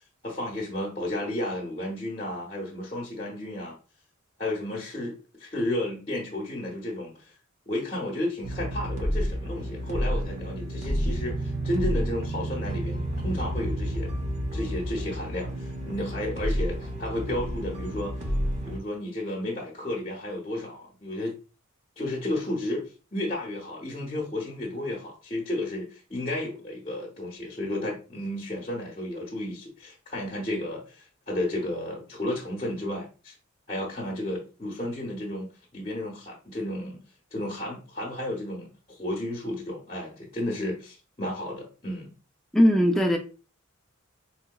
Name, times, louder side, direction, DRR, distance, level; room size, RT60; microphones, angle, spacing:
voice 1, 0.2-3.8 4.4-5.1 5.4-7.3 7.7-14.1 14.5-18.1 18.6-21.3 22.0-33.3 33.7-37.0 37.3-42.1, left 1 dB, 25° left, 0.8 m, -32 dB
sound 1, 8.4-18.8, equal, 35° right, 0.7 m, -30 dB
voice 2, 42.5-43.2, equal, ahead, 0.4 m, -19 dB
4.1 x 2.8 x 2.2 m
head